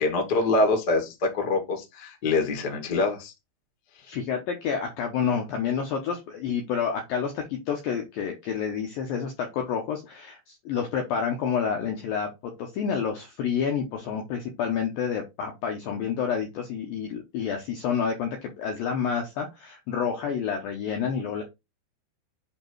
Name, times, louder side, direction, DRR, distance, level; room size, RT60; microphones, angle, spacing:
voice 1, 0.0-3.3, left 3 dB, 60° left, 2 dB, 1.0 m, -25 dB
voice 2, 4.1-21.4, left 7 dB, 80° left, 2 dB, 2.1 m, -29 dB
7.9 x 3.0 x 4.5 m, 0.23 s
omnidirectional pair, 5.4 m